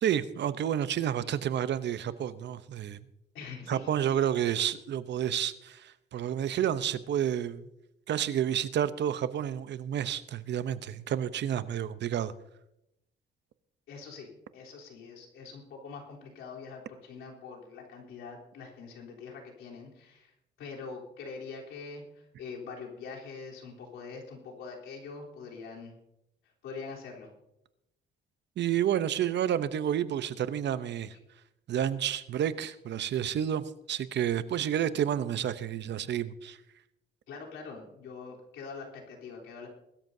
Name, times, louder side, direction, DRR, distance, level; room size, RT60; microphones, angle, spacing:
voice 1, 0.0-3.0 3.7-7.7 8.1-12.3 28.6-31.1 31.7-36.6, right 10 dB, 60° right, 14 dB, 0.7 m, -30 dB
voice 2, 3.3-3.9 13.9-20.3 20.6-25.9 26.6-27.3 37.3-39.7, left 4 dB, 85° left, -2 dB, 3.5 m, -44 dB
21.0 x 13.0 x 2.7 m, 0.85 s
cardioid pair, 90°, 20 cm